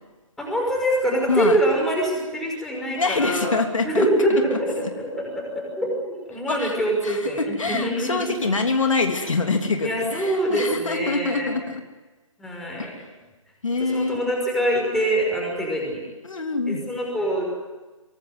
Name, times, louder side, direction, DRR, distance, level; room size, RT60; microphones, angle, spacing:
voice 1, 0.4-3.6 3.8-8.3 9.8-11.5 12.4-12.9 13.8-16.0 16.6-17.6, right 1 dB, ahead, -2 dB, 5.8 m, -24 dB
voice 2, 2.9-4.4 4.8-4.9 6.5-6.7 7.0-11.8 12.8-13.0 13.6-14.2 16.2-16.8, left 3 dB, 70° left, 4 dB, 3.1 m, -25 dB
24.0 x 19.0 x 9.5 m, 1.2 s
figure-of-eight pair, 150°, 17 cm